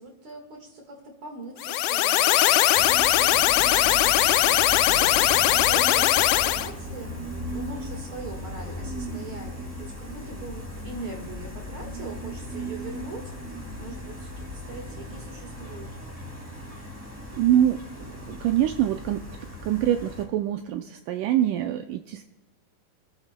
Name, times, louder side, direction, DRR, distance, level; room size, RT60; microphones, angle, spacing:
voice 1, 0.0-7.2 7.5-16.0, right 3 dB, 45° right, 2 dB, 2.0 m, -41 dB
sound 1, 1.6-6.7, left 14 dB, 85° left, 1.8 m, -20 dB
Gull seagull, 2.7-20.2, equal, 5° right, 1.3 m, -37 dB
voice 2, 17.3-19.3 19.6-22.3, right 11 dB, 85° right, 7 dB, 1.8 m, -25 dB
25.0 x 14.0 x 2.2 m, 1.1 s
omnidirectional pair, 4.1 m